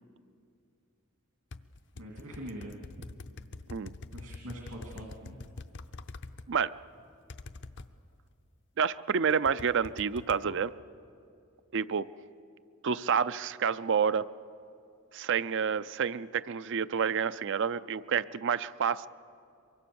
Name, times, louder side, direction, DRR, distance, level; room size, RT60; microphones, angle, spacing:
sound 1, 1.5-6.5 7.3-7.9 9.3-10.4, left 3 dB, 55° left, 0.7 m, -45 dB
voice 1, 1.9-3.0 4.1-5.4, equal, 75° right, -1 dB, 2.7 m, -43 dB
voice 2, 8.8-10.7 11.7-12.1 12.8-14.3 15.1-19.1, right 6 dB, 55° right, 15 dB, 0.5 m, -29 dB
24.0 x 24.0 x 7.0 m, 2.4 s
head